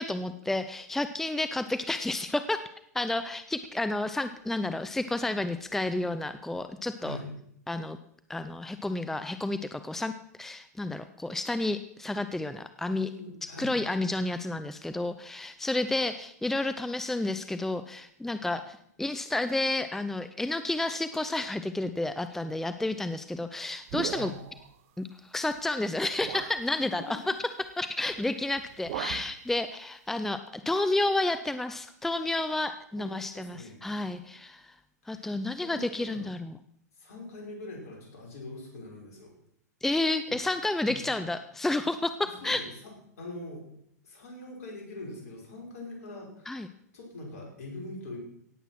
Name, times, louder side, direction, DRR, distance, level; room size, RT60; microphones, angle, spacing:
voice 1, 0.0-2.6 2.9-7.2 7.7-8.0 8.3-13.1 13.4-24.3 25.0-27.3 27.8-34.7 35.1-36.5 39.8-42.6 46.5-46.7, left 2 dB, 5° left, 10 dB, 0.6 m, -31 dB
voice 2, 12.9-13.8 24.1-24.3 26.9-27.2 33.0-33.8 35.1-35.3 35.6-36.3 37.0-39.3 40.9-41.1 42.4-42.9 43.2-43.6 44.0-48.2, left 2 dB, 60° left, -1 dB, 6.0 m, -43 dB
sound 1, 23.9-24.7 25.6-25.7 26.2-26.7 28.1-28.3 28.6-29.4, right 12 dB, 50° right, 0.9 m, -38 dB
17.0 x 8.1 x 6.0 m, 0.70 s
figure-of-eight pair, 105°, 9 cm